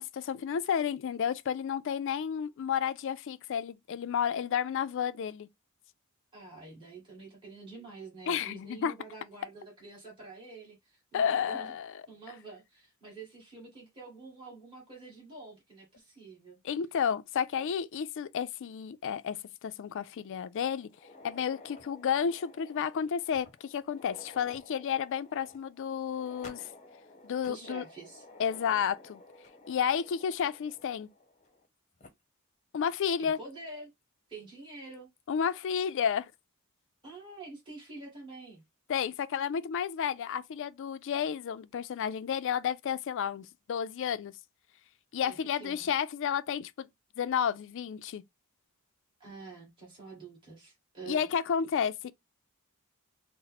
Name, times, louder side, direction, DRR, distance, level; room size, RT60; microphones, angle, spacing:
voice 1, 0.0-5.5 8.3-8.9 11.1-11.9 16.6-20.9 21.2-26.7 27.2-27.8 28.4-29.2 29.7-31.1 32.7-33.4 35.3-36.3 38.9-44.3 45.1-46.9 47.2-48.2 51.1-52.1, left 7 dB, 55° left, 0.3 m, -31 dB
voice 2, 6.3-11.8 12.1-16.6 27.5-28.3 33.2-33.9 34.3-35.1 37.0-38.6 45.2-45.9 49.2-51.3, right 3 dB, 20° right, 1.7 m, -47 dB
sound 1, 20.9-31.7 32.0-32.1 32.9-33.0 33.5-33.6 34.9-35.2, left 2 dB, 35° left, 0.7 m, -53 dB
4.1 x 2.0 x 4.0 m
head